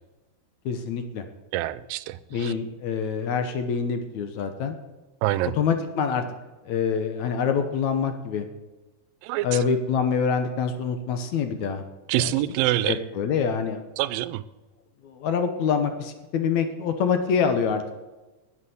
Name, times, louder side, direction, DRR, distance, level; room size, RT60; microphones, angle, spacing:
voice 1, 0.7-1.2 2.3-4.8 5.6-6.2 6.7-8.5 9.4-11.8 12.2-12.3 12.9-13.8 15.0-17.8, left 6 dB, 70° left, 8 dB, 2.0 m, -25 dB
voice 2, 1.5-2.5 5.2-5.5 9.2-9.6 12.1-13.0 14.0-14.4, right 15 dB, 90° right, 17 dB, 2.3 m, -26 dB
9.8 x 8.9 x 7.9 m, 1.1 s
omnidirectional pair, 3.9 m